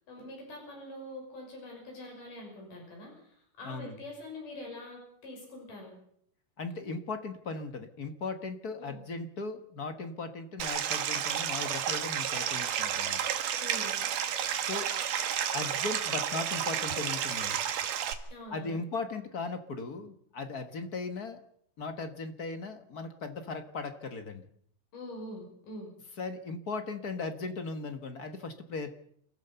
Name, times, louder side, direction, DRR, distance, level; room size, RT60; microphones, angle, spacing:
voice 1, 0.1-5.9 8.8-9.0 13.6-14.0 18.3-18.8 24.9-25.9, left 1 dB, 90° left, 0 dB, 7.7 m, -44 dB
voice 2, 3.6-4.0 6.6-13.2 14.6-14.9 15.5-17.6 18.5-21.4 21.8-24.4 26.2-29.0, left 3 dB, 45° left, 8 dB, 1.3 m, -38 dB
Stream, 10.6-18.1, right 9 dB, 85° right, 3.1 m, -31 dB
29.0 x 14.0 x 6.9 m, 0.68 s
omnidirectional pair, 3.7 m